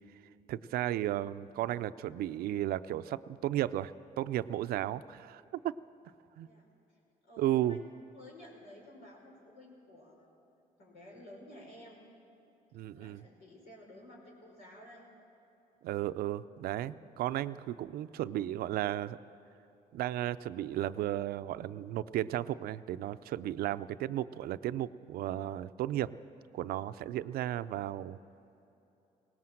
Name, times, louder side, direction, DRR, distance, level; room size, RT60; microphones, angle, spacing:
voice 1, 0.5-5.7 6.4-6.5 7.4-7.8 12.7-13.2 15.8-19.2 19.9-26.1 26.5-28.2, right 13 dB, 85° right, 14 dB, 0.5 m, -34 dB
voice 2, 7.2-7.8 8.1-10.3 10.8-12.0 12.9-15.1, left 1 dB, 90° left, -2 dB, 5.5 m, -53 dB
18.5 x 18.0 x 7.7 m, 3.0 s
cardioid pair, 70°, 15 cm